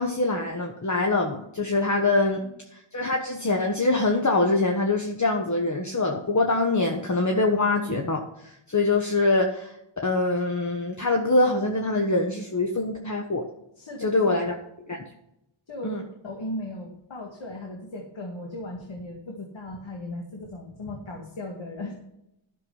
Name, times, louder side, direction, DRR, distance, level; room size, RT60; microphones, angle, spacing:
voice 1, 0.0-2.4 2.7-9.7 10.0-13.5 14.0-14.5 14.9-15.0 15.8-16.0, left 2 dB, 35° left, 2 dB, 1.3 m, -24 dB
voice 2, 13.8-14.3 15.7-22.0, left 1 dB, 65° left, 0 dB, 2.1 m, -37 dB
11.5 x 6.8 x 5.5 m, 0.83 s
wide cardioid pair, 70°, 49 cm